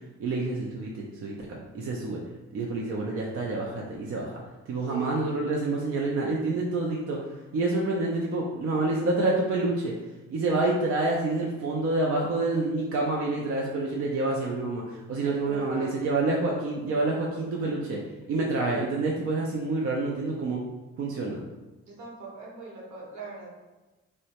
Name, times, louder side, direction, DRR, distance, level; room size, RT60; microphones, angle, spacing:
voice 1, 0.2-2.2 2.5-4.4 4.7-7.2 7.5-9.9 10.3-18.0 18.3-20.6 21.0-21.4, right 2 dB, 50° right, -2 dB, 0.4 m, -28 dB
voice 2, 4.8-5.2 15.2-16.0 21.8-23.6, right 3 dB, 70° right, -3 dB, 1.0 m, -42 dB
2.8 x 2.1 x 2.8 m, 1.1 s
cardioid pair, 90°, 30 cm